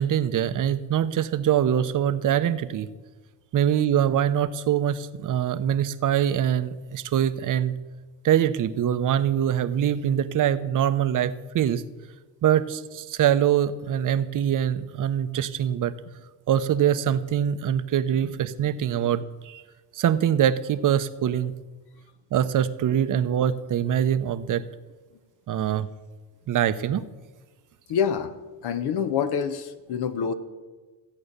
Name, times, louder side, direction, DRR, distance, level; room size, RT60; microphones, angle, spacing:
voice 1, 0.0-2.9 3.5-7.7 8.2-11.8 12.4-15.9 16.5-19.6 19.9-21.5 22.3-24.6 25.5-25.9 26.5-27.0, right 10 dB, 45° right, 13 dB, 0.8 m, -23 dB
voice 2, 27.9-28.4 28.6-30.3, left 7 dB, 65° left, 9 dB, 1.1 m, -27 dB
15.0 x 8.6 x 6.7 m, 1.3 s
supercardioid pair, 90°, 43 cm